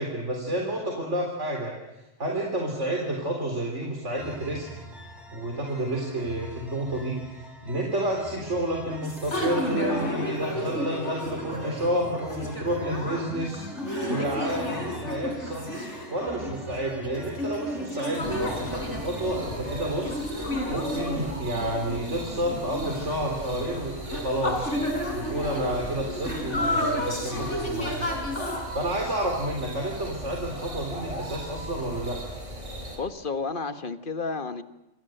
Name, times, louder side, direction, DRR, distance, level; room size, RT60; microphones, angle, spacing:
voice 1, 0.0-4.7 5.3-13.6 14.1-15.7 16.1-20.2 20.7-24.7 25.1-28.2 28.7-32.2, right 1 dB, 70° right, 1 dB, 4.2 m, -30 dB
sound 1, 4.2-20.2, left 1 dB, ahead, 6.5 m, -44 dB
sound 2, 9.0-28.6, left 1 dB, 70° left, 5.3 m, -32 dB
sound 3, 18.2-33.0, right 1 dB, 25° right, 6.4 m, -38 dB
voice 2, 33.0-34.6, left 4 dB, 45° left, 10 dB, 1.6 m, -31 dB
27.5 x 26.0 x 7.9 m, 0.93 s
omnidirectional pair, 1.3 m